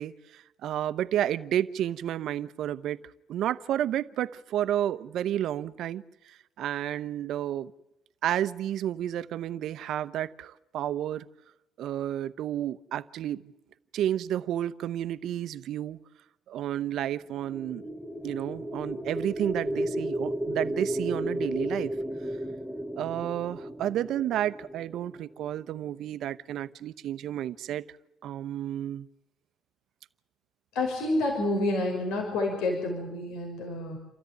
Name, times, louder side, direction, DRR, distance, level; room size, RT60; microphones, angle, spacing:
voice 1, 0.0-3.0 3.3-7.7 8.2-11.3 11.8-13.4 13.9-16.0 16.5-17.8 18.2-21.9 23.0-27.8 28.2-29.1, right 11 dB, 65° right, 14 dB, 0.9 m, -31 dB
sound 1, 17.4-25.5, right 1 dB, 5° left, 1.2 m, -34 dB
voice 2, 30.7-34.0, left 2 dB, 85° left, 1 dB, 6.1 m, -28 dB
29.0 x 14.0 x 9.3 m, 0.92 s
cardioid pair, 130°, 0 cm